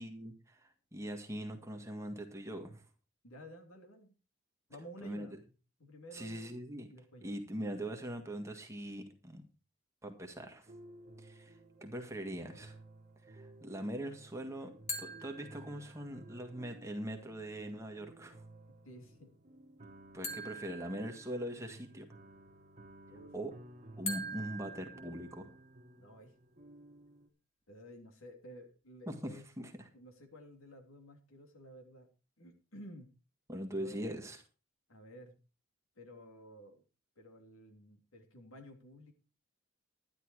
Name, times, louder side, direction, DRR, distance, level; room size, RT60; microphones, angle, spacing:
voice 1, 0.0-2.8 5.0-5.3 6.1-6.9 7.2-9.4 10.0-10.7 11.2-12.8 13.3-18.4 20.1-22.1 23.3-23.5 24.0-25.5 29.1-29.9 33.5-34.4, right 1 dB, 15° right, 3 dB, 1.8 m, -42 dB
voice 2, 3.2-4.1 4.7-5.5 5.8-7.3 18.8-19.3 23.1-23.3 26.0-26.3 27.7-29.4 29.9-32.1 32.4-33.1 33.7-34.3 34.9-35.4 35.9-36.8 37.1-39.1, equal, 75° left, 3 dB, 3.3 m, -53 dB
sound 1, 10.7-27.3, right 2 dB, 35° right, 1.9 m, -56 dB
sound 2, 14.9-16.2 20.2-21.8 24.1-25.8, left 1 dB, 30° left, 2.8 m, -44 dB
11.5 x 11.0 x 4.8 m, 0.33 s
head